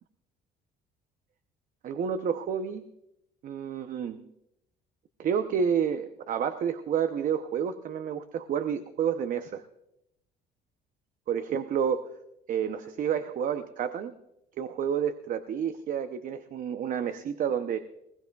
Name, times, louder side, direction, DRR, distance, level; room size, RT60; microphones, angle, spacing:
voice 1, 1.8-2.9 3.4-4.2 5.2-9.6 11.3-12.1 12.5-14.1 14.6-17.8, right 7 dB, 55° right, 9 dB, 0.7 m, -30 dB
21.0 x 16.5 x 2.3 m, 0.82 s
cardioid pair, 110°, 17 cm